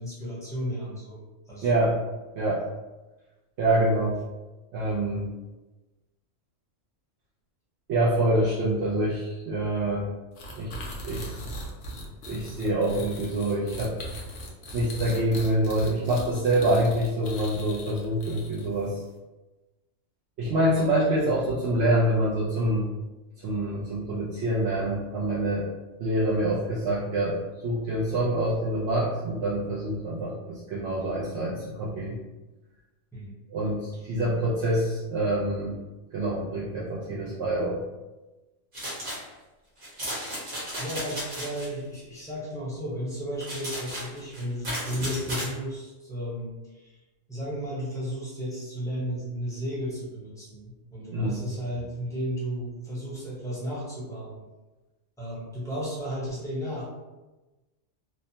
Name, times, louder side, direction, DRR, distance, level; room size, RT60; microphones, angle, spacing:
voice 1, 0.0-1.9 18.2-18.4 33.1-33.4 33.9-34.2 40.2-47.0 47.3-54.4 55.2-56.9, equal, 5° left, -7 dB, 0.7 m, -34 dB
voice 2, 1.6-1.9 2.3-2.6 3.6-4.2 4.7-5.3 7.9-10.1 10.6-10.7 11.0-11.3 12.3-13.9 14.7-18.9 20.4-22.9 23.4-25.7 26.0-27.4 27.6-32.2 33.5-35.8 36.1-37.8 51.1-51.4, right 1 dB, 65° right, -7 dB, 0.8 m, -26 dB
sound 1, 10.4-18.9, equal, 65° left, 0.8 m, -39 dB
sound 2, 38.7-39.2 39.8-41.7 43.4-45.5, equal, 45° right, 1.1 m, -34 dB
3.0 x 2.1 x 2.7 m, 1.1 s
omnidirectional pair, 1.3 m